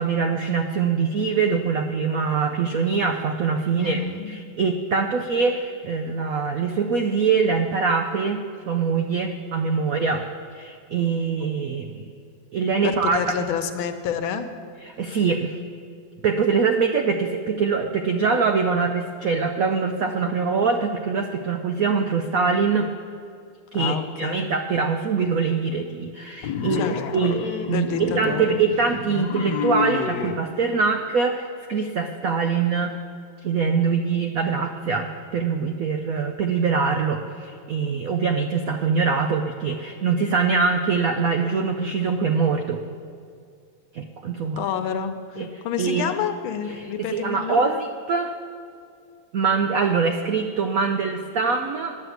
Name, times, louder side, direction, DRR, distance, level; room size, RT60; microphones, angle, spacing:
voice 1, 0.0-4.0 4.3-8.4 8.7-10.2 10.5-12.1 12.5-13.2 14.8-15.6 16.2-22.9 23.7-26.9 27.1-32.9 33.4-42.8 43.9-44.6 45.4-45.5 45.8-46.1 47.0-48.3 49.3-52.0, right 5 dB, 80° right, 5 dB, 0.7 m, -23 dB
voice 2, 3.7-4.3 12.8-14.5 23.7-24.5 26.8-27.4 27.7-28.6 44.6-47.8, left 7 dB, 85° left, 8 dB, 1.6 m, -29 dB
sound 1, 26.4-30.4, left 7 dB, 65° left, 1.2 m, -29 dB
11.0 x 6.5 x 7.9 m, 2.3 s
omnidirectional pair, 2.2 m